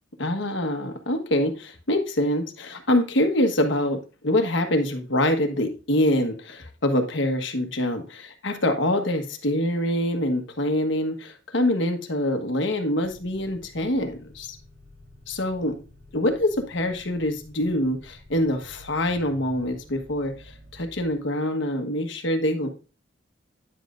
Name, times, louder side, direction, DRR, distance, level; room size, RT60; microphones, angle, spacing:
voice 1, 0.2-14.6 15.3-15.8 16.1-22.7, left 1 dB, 70° left, 5 dB, 1.3 m, -25 dB
sound 1, 13.0-21.1, left 1 dB, 90° right, 3.2 m, -50 dB
9.9 x 7.4 x 2.5 m, 0.33 s
head